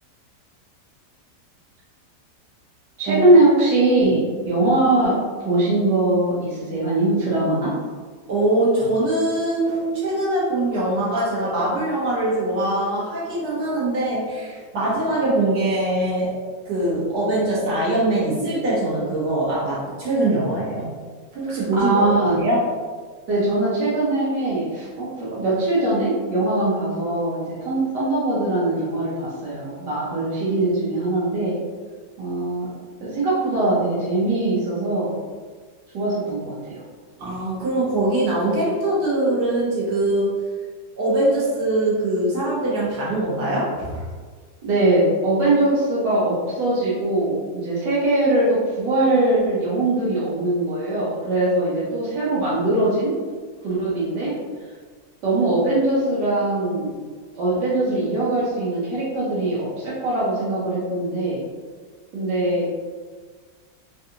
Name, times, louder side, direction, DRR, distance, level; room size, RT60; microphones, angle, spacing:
voice 1, 3.0-7.7 21.7-22.4 23.3-31.5 32.2-32.7 33.0-35.1 35.9-36.8 44.6-53.1 53.6-54.4 55.2-57.0 57.4-61.4 62.1-62.7, right 2 dB, 80° right, -8 dB, 1.5 m, -21 dB
voice 2, 8.3-16.3 16.6-20.9 21.3-22.1 22.3-22.6 37.2-40.3 41.0-44.0, right 1 dB, 65° right, -7 dB, 1.6 m, -22 dB
4.0 x 2.4 x 2.7 m, 1.5 s
omnidirectional pair, 1.8 m